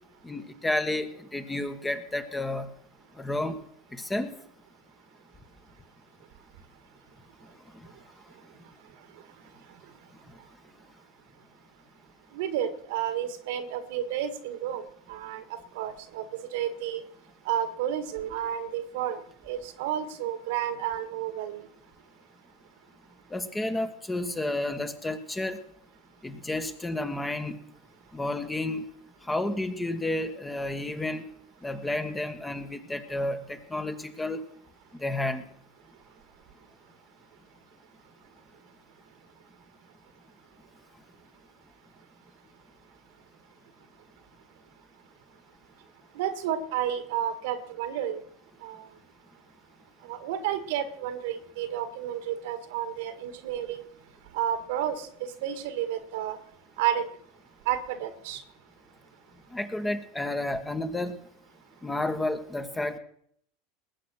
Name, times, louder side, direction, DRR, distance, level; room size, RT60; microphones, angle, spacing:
voice 1, 0.2-2.7 3.2-3.6 3.9-4.3 23.3-25.6 26.2-27.6 28.1-28.8 29.3-31.3 31.6-34.4 35.0-35.4 59.5-61.2 61.8-63.0, left 2 dB, 10° left, 8 dB, 1.6 m, -31 dB
voice 2, 12.3-14.8 15.1-17.0 17.5-21.6 46.2-48.2 48.6-48.8 50.0-53.8 54.3-56.4 56.8-57.1 57.7-58.4, right 10 dB, 70° right, 11 dB, 1.8 m, -31 dB
20.0 x 7.6 x 6.3 m, 0.67 s
hypercardioid pair, 90°, 0 cm